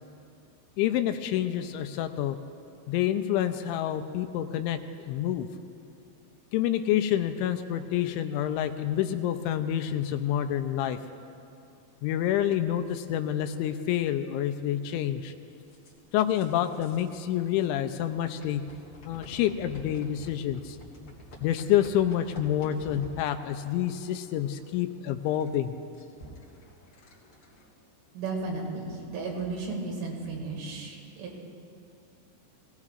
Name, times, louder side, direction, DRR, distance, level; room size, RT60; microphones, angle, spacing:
voice 1, 0.8-2.4 2.9-4.8 5.1-5.5 6.5-11.0 12.0-15.3 16.1-18.6 19.1-20.8 21.4-25.7, left 11 dB, 85° left, 8 dB, 2.8 m, -28 dB
sound 1, 15.7-17.2 17.5-17.6 18.4-27.7, left 1 dB, 55° left, 1.4 m, -49 dB
voice 2, 28.1-31.4, right 3 dB, 80° right, -1 dB, 4.5 m, -34 dB
22.0 x 17.0 x 2.4 m, 2.6 s
omnidirectional pair, 5.4 m